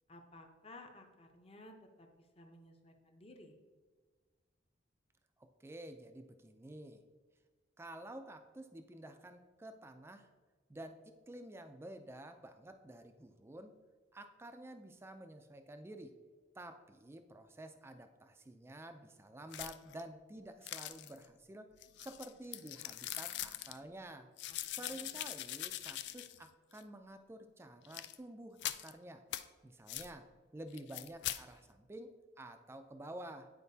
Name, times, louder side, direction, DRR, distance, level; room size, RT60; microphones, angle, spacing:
voice 1, 0.1-3.6 24.5-25.1, left 1 dB, 30° left, 4 dB, 0.7 m, -56 dB
voice 2, 5.4-7.0 7.8-10.3 10.7-13.8 14.1-16.2 16.6-21.7 22.0-24.3 24.7-29.2 29.6-30.3 30.5-33.5, right 1 dB, 15° right, 7 dB, 0.4 m, -50 dB
sound 1, 19.5-20.0 20.6-21.3 21.8-23.8 24.4-26.5 26.8-26.9 27.8-28.2 28.6-28.9 29.3-29.4 29.9-30.1 30.7-31.4, left 13 dB, 60° left, 0.3 m, -42 dB
9.9 x 4.6 x 2.7 m, 1.4 s
head